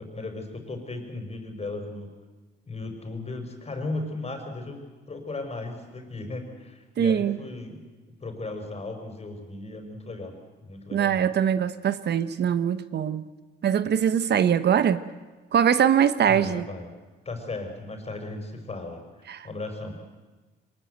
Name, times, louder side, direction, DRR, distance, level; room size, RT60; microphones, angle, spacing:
voice 1, 0.0-2.1 2.7-7.8 8.2-10.3 10.6-11.3 16.3-16.9 17.2-19.0 19.4-20.0, left 2 dB, 30° left, 5 dB, 5.0 m, -36 dB
voice 2, 7.0-7.4 10.9-13.2 13.6-15.0 15.5-16.7 19.3-19.5, right 8 dB, 60° right, 13 dB, 1.1 m, -22 dB
23.0 x 20.5 x 8.1 m, 1.3 s
cardioid pair, 90°, 20 cm